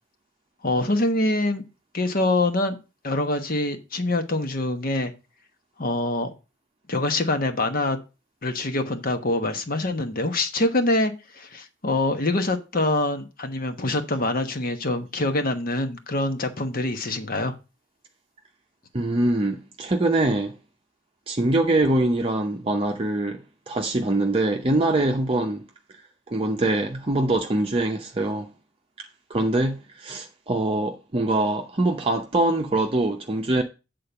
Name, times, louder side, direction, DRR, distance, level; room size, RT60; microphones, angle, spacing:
voice 1, 0.6-1.6 1.9-2.8 3.0-5.1 5.8-6.3 6.9-8.0 8.4-17.5, left 2 dB, 50° left, 1.2 m, -25 dB
voice 2, 18.9-20.5 21.3-23.4 23.7-25.6 26.3-28.5 29.0-33.6, right 2 dB, 30° right, 0.7 m, -23 dB
8.5 x 3.8 x 6.9 m
head